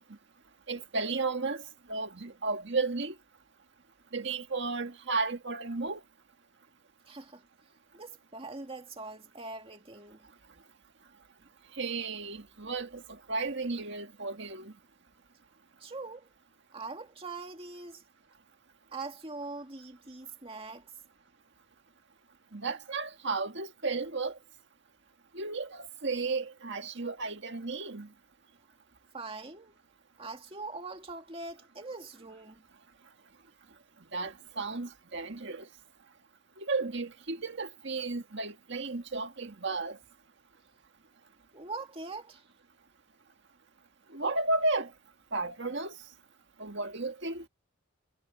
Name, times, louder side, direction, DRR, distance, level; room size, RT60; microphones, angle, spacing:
voice 1, 0.7-3.2 4.1-6.0 11.7-14.7 22.5-24.4 25.3-28.1 34.1-35.7 36.6-40.0 44.1-44.9 45.3-46.0 46.6-47.5, right 3 dB, 55° right, 1.8 m, -33 dB
voice 2, 7.1-7.4 7.9-10.3 15.8-16.3 16.7-18.0 18.9-20.9 29.1-29.8 30.2-32.6 41.5-42.4, right 3 dB, 25° right, 2.2 m, -42 dB
head